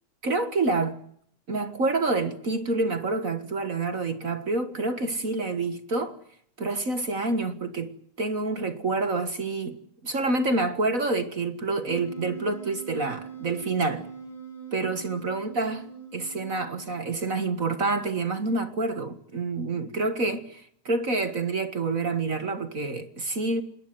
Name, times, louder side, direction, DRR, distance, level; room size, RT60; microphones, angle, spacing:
voice 1, 0.2-1.0 1.5-6.2 6.6-14.1 14.7-15.8 16.1-23.6, right 3 dB, 35° right, 1.4 m, -28 dB
Wind instrument woodwind instrument, 11.9-17.3, right 6 dB, 55° left, 7.7 m, -42 dB
27.0 x 21.5 x 7.8 m
omnidirectional pair, 3.4 m